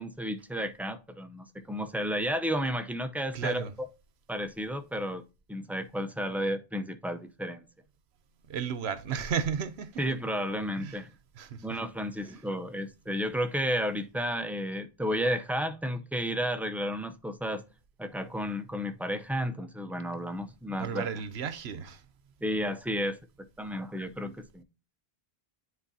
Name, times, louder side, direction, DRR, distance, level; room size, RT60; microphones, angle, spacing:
voice 1, 0.0-3.6 4.3-5.2 5.5-7.6 10.0-11.1 11.6-17.6 18.0-21.1 22.4-23.2 23.6-24.6, equal, ahead, 0.4 m, -32 dB
voice 2, 3.3-3.7 8.5-10.0 10.8-11.0 11.4-11.7 20.8-22.0, right 7 dB, 85° right, 1.0 m, -33 dB
9.7 x 4.1 x 2.7 m
omnidirectional pair, 1.1 m